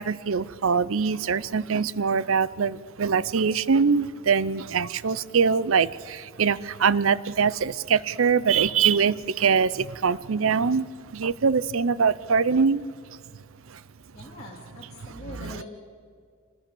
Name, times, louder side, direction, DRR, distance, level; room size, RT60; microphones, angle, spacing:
voice 1, 0.0-12.8 13.7-13.8 15.2-15.6, right 6 dB, 75° right, 19 dB, 0.6 m, -23 dB
voice 2, 14.1-15.6, left 2 dB, 30° left, -5 dB, 3.1 m, -43 dB
26.0 x 20.0 x 7.0 m, 2.2 s
head